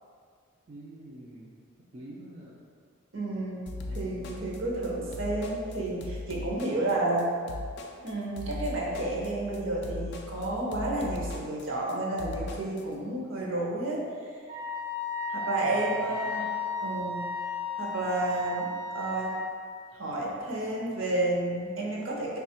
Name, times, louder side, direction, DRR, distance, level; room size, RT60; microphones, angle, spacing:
voice 1, 0.7-1.5 1.9-2.6 3.9-4.3 15.6-16.2, right 1 dB, 30° right, -6 dB, 0.4 m, -47 dB
voice 2, 3.1-7.3 8.0-14.4 15.3-16.5 16.8-17.2 17.8-19.3 19.9-22.4, right 2 dB, 60° right, -3 dB, 0.7 m, -31 dB
sound 1, 3.7-12.8, left 2 dB, 50° left, 0.3 m, -39 dB
Wind instrument woodwind instrument, 14.5-19.4, left 3 dB, 80° right, 1.1 m, -34 dB
3.2 x 2.3 x 4.2 m, 2.1 s
head